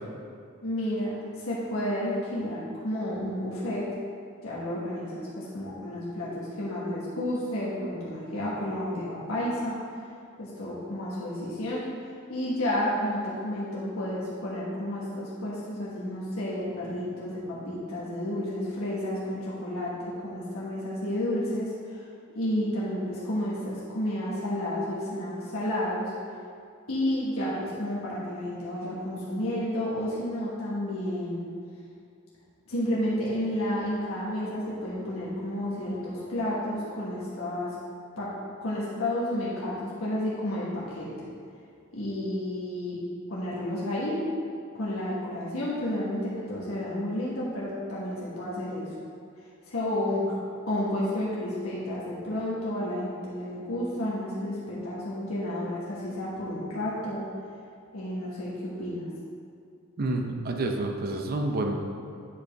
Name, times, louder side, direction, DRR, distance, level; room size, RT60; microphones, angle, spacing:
voice 1, 0.6-4.0 4.4-9.7 10.4-11.9 12.3-22.0 22.3-26.1 26.9-31.5 32.7-37.7 38.2-38.3 38.6-41.3 41.9-43.0 43.3-44.2 44.7-48.9 49.7-50.3 50.7-57.2 57.9-59.1, left 1 dB, 90° left, -8 dB, 1.4 m, -31 dB
voice 2, 60.0-61.8, right 2 dB, 45° right, 3 dB, 0.6 m, -28 dB
9.4 x 5.1 x 3.5 m, 2.4 s
head